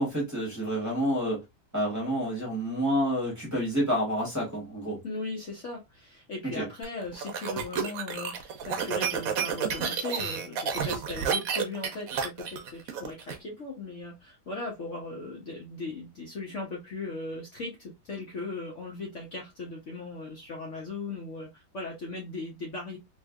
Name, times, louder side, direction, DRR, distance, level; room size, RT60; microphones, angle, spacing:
voice 1, 0.0-1.4 1.7-5.0 6.5-6.7, equal, 10° right, 1.6 m, -28 dB
voice 2, 5.0-23.0, left 3 dB, 50° left, 1.1 m, -38 dB
sound 1, 6.8-13.4, right 7 dB, 65° right, 1.0 m, -30 dB
3.1 x 3.1 x 2.3 m
omnidirectional pair, 1.8 m